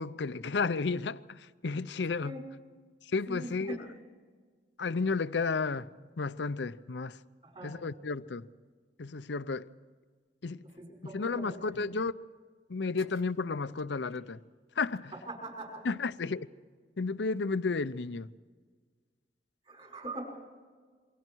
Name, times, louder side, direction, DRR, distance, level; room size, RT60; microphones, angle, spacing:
voice 1, 0.0-2.4 3.1-3.8 4.8-5.9 6.2-7.2 7.6-8.5 9.0-9.7 10.4-10.6 11.1-12.1 12.7-14.4 14.8-15.1 15.8-16.5 17.0-18.3, left 4 dB, 75° left, 0.6 m, -32 dB
voice 2, 3.3-3.8 7.4-7.7 10.8-11.6 15.3-15.8 19.7-20.2, right 1 dB, 35° right, 5.3 m, -42 dB
27.5 x 24.0 x 4.6 m
head